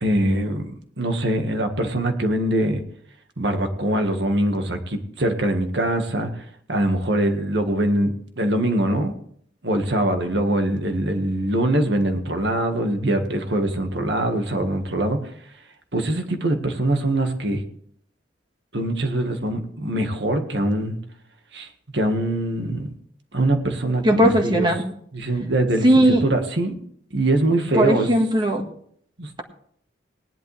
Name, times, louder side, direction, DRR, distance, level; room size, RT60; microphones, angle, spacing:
voice 1, 0.0-2.8 3.4-6.4 6.7-9.1 9.6-15.2 15.9-17.6 18.7-21.0 21.5-22.9 23.3-24.7 25.1-26.8 27.1-28.1 29.2-29.4, right 1 dB, 70° right, 6 dB, 1.7 m, -23 dB
voice 2, 24.0-24.9 25.8-26.2 27.8-28.6, right 1 dB, 25° right, 3 dB, 1.7 m, -17 dB
18.5 x 11.0 x 3.4 m, 0.63 s
head